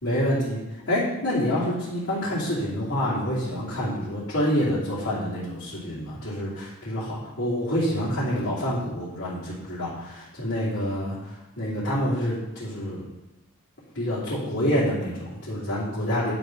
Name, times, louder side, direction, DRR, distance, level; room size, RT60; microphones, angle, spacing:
voice 1, 0.0-0.6 0.9-13.1 13.9-16.3, equal, 60° left, -11 dB, 2.8 m, -27 dB
9.6 x 5.3 x 5.8 m, 1.0 s
head